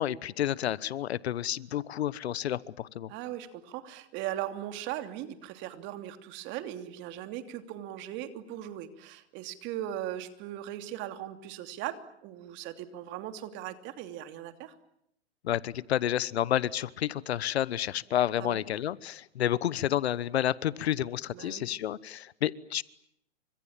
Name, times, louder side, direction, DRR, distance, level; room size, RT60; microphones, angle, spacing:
voice 1, 0.0-3.1 15.4-22.8, left 11 dB, 65° left, 20 dB, 1.1 m, -30 dB
voice 2, 3.1-14.7 18.4-18.6 21.3-21.7, right 12 dB, 30° right, 9 dB, 2.9 m, -39 dB
30.0 x 26.0 x 7.4 m, 0.76 s
hypercardioid pair, 135°, 35 cm